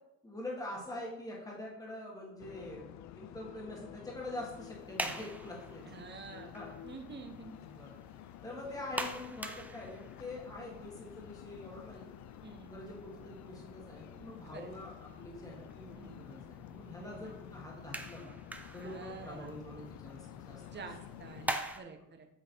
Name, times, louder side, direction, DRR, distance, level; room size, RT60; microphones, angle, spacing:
voice 1, 0.2-2.8 3.2-6.3 6.5-6.8 7.6-7.9 8.4-12.1 12.7-18.3 18.7-20.9, left 1 dB, 10° left, -3 dB, 1.7 m, -45 dB
sound 1, 2.4-21.5, left 11 dB, 70° left, 0.4 m, -51 dB
sound 2, 4.7-21.8, right 1 dB, 5° right, 0.6 m, -46 dB
voice 2, 5.9-6.5 6.8-7.5 12.4-12.7 14.5-14.7 15.9-16.2 17.0-17.3 18.8-19.5 20.7-22.3, right 5 dB, 35° right, 5 dB, 1.0 m, -48 dB
8.2 x 3.1 x 4.4 m, 0.86 s
cardioid pair, 95°, 29 cm